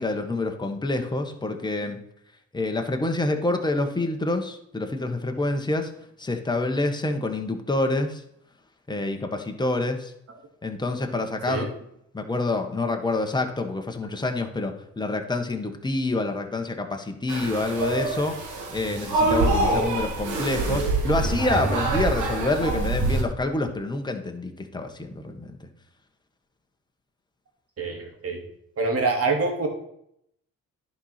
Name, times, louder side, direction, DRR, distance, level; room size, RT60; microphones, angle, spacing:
voice 1, 0.0-2.0 2.5-5.9 6.2-8.2 8.9-10.1 10.6-11.7 12.1-18.4 18.7-25.7, left 2 dB, 15° left, 4 dB, 1.3 m, -27 dB
sound 1, 17.3-23.2, right 2 dB, 80° right, 1.9 m, -25 dB
voice 2, 27.8-28.4 28.8-29.7, right 3 dB, 50° right, 2 dB, 2.4 m, -25 dB
10.5 x 4.3 x 5.8 m, 0.75 s
cardioid pair, 90°, 30 cm